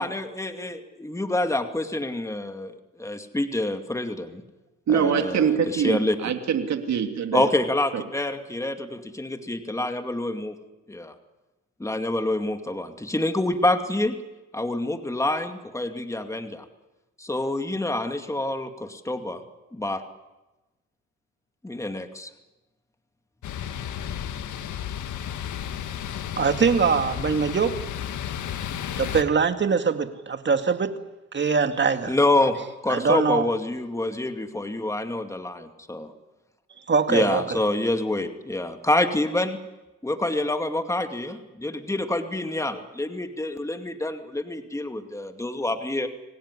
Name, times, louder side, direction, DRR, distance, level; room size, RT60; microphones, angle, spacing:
voice 1, 0.0-4.4 4.9-6.2 7.3-10.5 10.9-11.1 11.8-14.1 14.5-16.6 17.2-19.4 19.7-20.0 21.6-22.3 32.1-32.6 32.8-36.1 37.1-39.6 40.0-46.1, left 2 dB, 10° left, 7 dB, 2.3 m, -27 dB
voice 2, 4.9-7.5 7.9-8.0, right 7 dB, 65° right, 6 dB, 2.7 m, -24 dB
sound 1, 23.4-29.2, left 9 dB, 75° left, 1.9 m, -33 dB
voice 3, 26.4-27.7 29.0-30.9 31.3-32.2 32.9-33.5 36.9-37.6, right 5 dB, 40° right, 8 dB, 2.2 m, -22 dB
26.0 x 18.0 x 9.9 m, 1.1 s
cardioid pair, 90°, 30 cm